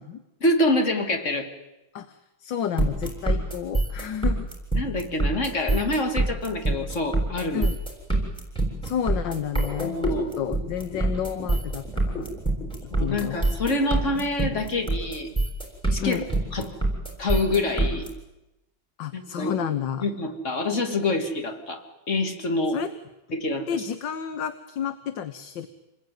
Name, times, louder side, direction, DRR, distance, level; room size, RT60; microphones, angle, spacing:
voice 1, 0.4-1.5 4.8-7.7 9.8-10.4 12.9-15.3 15.9-16.2 16.5-16.7 17.2-18.1 19.1-19.5 20.0-22.8 23.3-23.6, left 2 dB, 35° left, 4 dB, 3.1 m, -26 dB
voice 2, 1.9-4.5 7.5-7.8 8.8-12.3 12.8-13.4 16.0-16.3 19.0-20.0 22.7-22.9 23.7-25.7, left 9 dB, 70° left, 10 dB, 1.8 m, -31 dB
sound 1, 2.8-18.1, right 2 dB, ahead, 6.9 m, -25 dB
28.5 x 21.0 x 9.5 m, 0.98 s
omnidirectional pair, 2.2 m